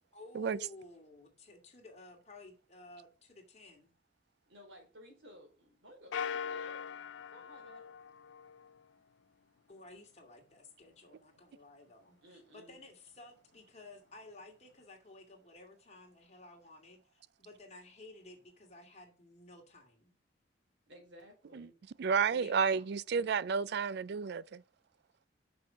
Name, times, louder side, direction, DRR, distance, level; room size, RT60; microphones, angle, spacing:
voice 1, 0.1-3.9 9.7-20.1 22.3-22.9, left 2 dB, 40° left, 2.3 m, -54 dB
voice 2, 4.5-6.9 7.3-7.9 12.2-12.8 20.9-21.7 22.4-22.6, equal, 90° right, 4.2 m, -56 dB
sound 1, 6.1-8.8, left 7 dB, 85° left, 0.4 m, -41 dB
voice 3, 22.0-24.6, right 6 dB, 60° right, 0.4 m, -31 dB
6.2 x 6.1 x 5.6 m
head